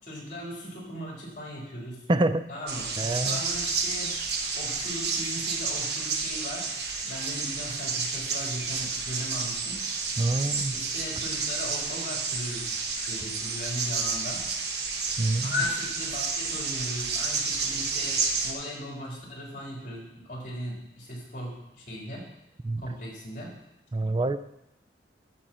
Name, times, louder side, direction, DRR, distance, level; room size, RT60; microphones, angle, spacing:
voice 1, 0.0-2.1 2.5-4.1 4.6-6.7 7.0-9.8 10.7-12.7 12.9-14.4 15.4-22.2 22.8-23.5, left 1 dB, 45° left, -3 dB, 3.7 m, -37 dB
voice 2, 2.1-2.5 3.0-3.4 10.2-10.8 15.2-15.5 22.6-22.8 23.9-24.4, right 2 dB, 25° right, 11 dB, 0.4 m, -26 dB
sound 1, 2.7-18.5, right 4 dB, 65° right, 1.2 m, -30 dB
12.0 x 7.4 x 4.3 m, 0.86 s
head